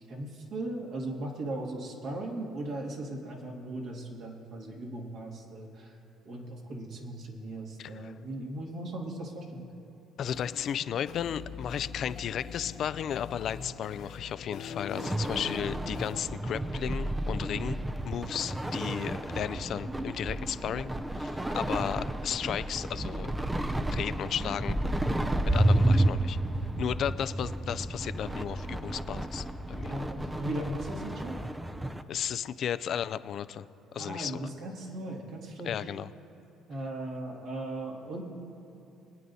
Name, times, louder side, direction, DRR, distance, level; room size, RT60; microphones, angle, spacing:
voice 1, 0.1-6.0 6.3-9.7 17.5-17.9 29.8-31.4 34.0-35.9 36.7-38.2, right 1 dB, 65° right, -1 dB, 2.2 m, -38 dB
voice 2, 7.8-8.1 10.2-17.8 18.0-23.3 23.9-24.8 25.5-26.4 26.8-29.9 32.1-33.7 33.9-34.4 35.6-36.1, left 9 dB, 55° left, 14 dB, 0.4 m, -34 dB
sound 1, 10.2-16.2, left 7 dB, 75° left, 1.6 m, -43 dB
sound 2, 14.9-32.0, right 1 dB, 10° right, 0.5 m, -31 dB
24.5 x 9.3 x 2.7 m, 2.9 s
supercardioid pair, 85°, 0 cm